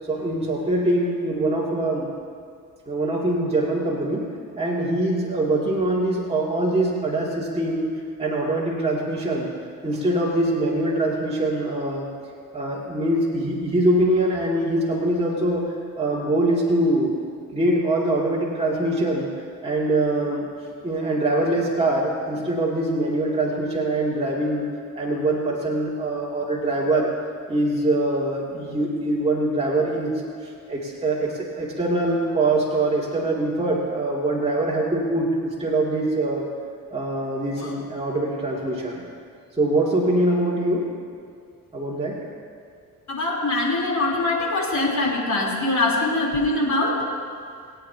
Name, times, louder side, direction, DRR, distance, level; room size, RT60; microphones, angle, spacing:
voice 1, 0.1-2.1 2.9-4.3 4.6-7.9 8.2-9.5 9.8-12.1 12.5-17.2 17.5-19.3 19.6-20.5 20.8-24.6 24.9-27.1 27.5-36.5 36.9-39.0 39.6-40.9 41.7-42.2, right 1 dB, 15° right, -5 dB, 2.5 m, -23 dB
voice 2, 43.1-47.0, left 2 dB, 45° left, -3 dB, 3.7 m, -23 dB
24.5 x 9.2 x 2.9 m, 2.2 s
supercardioid pair, 65°, 38 cm